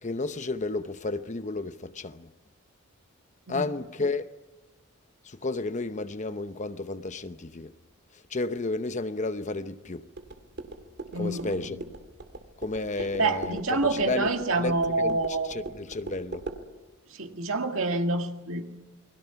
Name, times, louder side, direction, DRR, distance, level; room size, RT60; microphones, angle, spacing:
voice 1, 0.0-2.3 3.5-4.2 5.2-7.7 8.3-10.1 11.1-11.9 12.6-13.6 13.9-14.3 14.6-15.2 15.5-16.4, left 3 dB, 35° left, 0.8 m, -32 dB
sound 1, 10.1-16.6, right 2 dB, 55° right, 2.3 m, -41 dB
voice 2, 11.1-11.5 13.2-15.5 17.1-18.6, right 3 dB, 75° right, 2.0 m, -27 dB
29.0 x 21.5 x 5.9 m
head